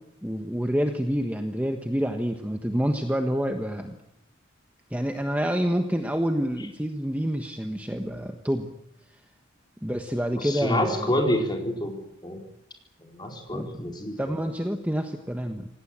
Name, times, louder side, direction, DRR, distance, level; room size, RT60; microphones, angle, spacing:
voice 1, 0.2-4.0 4.9-8.7 9.8-11.2 13.5-13.7 14.2-15.7, equal, 5° right, 5 dB, 1.3 m, -27 dB
voice 2, 10.4-12.0 12.2-12.4 13.1-14.2, left 1 dB, 20° left, 2 dB, 4.4 m, -27 dB
27.0 x 18.0 x 8.8 m, 0.75 s
head